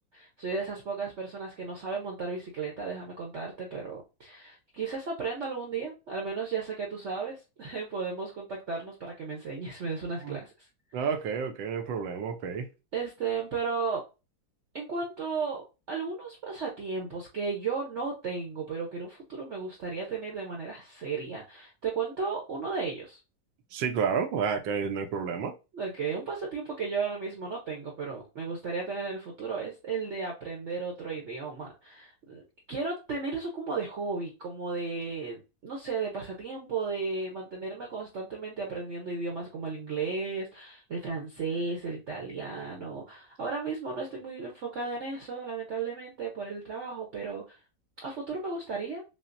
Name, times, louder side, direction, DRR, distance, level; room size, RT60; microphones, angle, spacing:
voice 1, 0.1-10.5 12.9-14.0 14.7-23.2 25.7-32.4 32.7-47.6 48.0-49.0, right 4 dB, 55° right, 0.8 m, -34 dB
voice 2, 10.9-12.7 23.7-25.5, right 6 dB, 85° right, 1.4 m, -30 dB
5.9 x 2.0 x 2.5 m
omnidirectional pair, 2.0 m